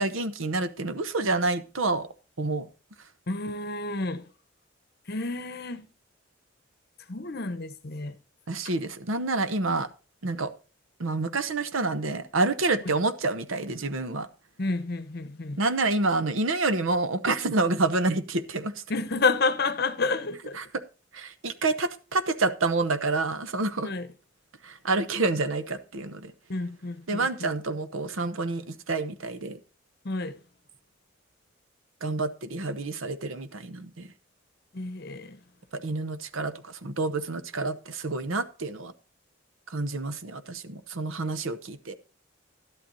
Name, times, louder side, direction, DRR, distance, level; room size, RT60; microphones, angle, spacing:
voice 1, 0.0-2.1 2.4-2.7 8.5-9.9 10.2-10.5 11.0-14.3 15.6-18.8 20.6-20.8 21.1-23.9 24.6-26.3 27.1-29.6 32.0-34.1 35.7-38.9 39.7-42.0, right 3 dB, 80° right, 0.9 m, -28 dB
voice 2, 3.3-4.2 5.1-5.9 7.1-8.2 12.8-12.9 14.6-15.6 18.9-20.6 23.8-24.1 26.5-27.5 30.0-30.4 34.7-35.4 41.2-41.3, left 3 dB, 50° left, 1.0 m, -30 dB
12.0 x 11.5 x 2.7 m
head